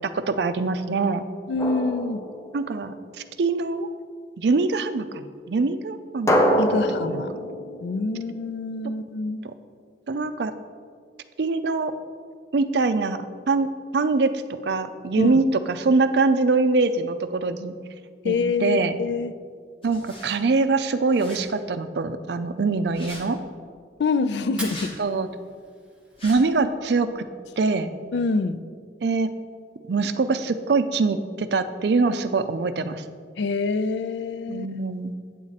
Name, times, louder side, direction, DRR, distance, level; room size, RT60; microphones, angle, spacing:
voice 1, 0.0-1.3 2.5-2.9 3.4-3.9 4.4-6.4 7.1-7.3 10.1-10.5 11.4-11.9 12.5-13.7 13.9-14.3 14.6-17.7 18.2-18.3 18.6-19.0 19.8-23.4 25.0-25.3 26.2-27.3 27.6-27.9 29.0-29.3 29.9-33.0 34.5-35.2, right 3 dB, 65° right, 11 dB, 0.5 m, -23 dB
voice 2, 1.5-2.2 6.6-7.3 7.8-9.4 15.2-15.3 18.2-19.3 24.0-25.0 28.1-28.6 33.4-34.7, left 3 dB, 75° left, 11 dB, 0.4 m, -26 dB
Drum, 1.6-3.1 6.3-9.0, equal, 15° left, 0.7 m, -26 dB
sound 1, 19.8-20.4 21.1-21.4 22.8-23.2 24.5-24.9 26.1-26.4, left 1 dB, 30° left, 1.8 m, -41 dB
Fire, 24.4-26.4, right 1 dB, 5° right, 1.1 m, -41 dB
8.5 x 7.4 x 4.1 m, 2.1 s
head